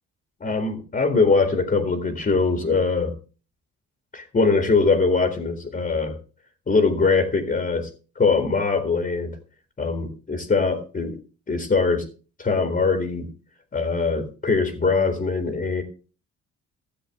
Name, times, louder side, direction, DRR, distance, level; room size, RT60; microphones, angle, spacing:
voice 1, 0.4-3.1 4.1-6.2 6.7-7.9 8.2-9.3 9.8-11.2 11.5-12.0 12.4-13.3 13.7-15.8, left 4 dB, 30° left, 5 dB, 1.9 m, -22 dB
14.0 x 7.4 x 3.6 m, 0.35 s
cardioid pair, 90°, 30 cm